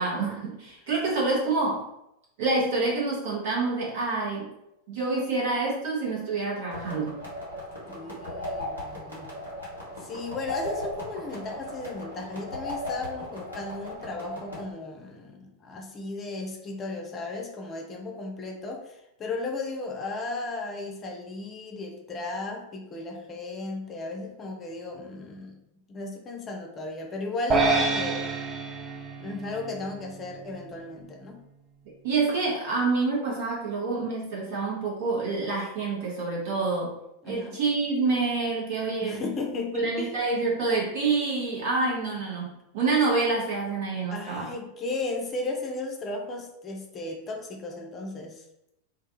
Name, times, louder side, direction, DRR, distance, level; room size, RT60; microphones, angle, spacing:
voice 1, 0.0-1.8 2.4-4.5 4.9-7.2 32.0-36.9 37.2-39.2 39.7-44.5, right 3 dB, 50° right, -4 dB, 1.0 m, -27 dB
sound 1, 6.7-14.6, left 1 dB, 80° right, 1.1 m, -37 dB
voice 2, 7.9-9.3 10.0-25.6 25.9-28.2 29.2-31.4 37.2-37.6 39.0-40.2 44.1-48.4, left 3 dB, 25° left, 1 dB, 0.5 m, -35 dB
sound 2, 27.5-30.0, right 3 dB, 25° right, 0.5 m, -26 dB
2.4 x 2.3 x 2.8 m, 0.84 s
figure-of-eight pair, 90°, 0 cm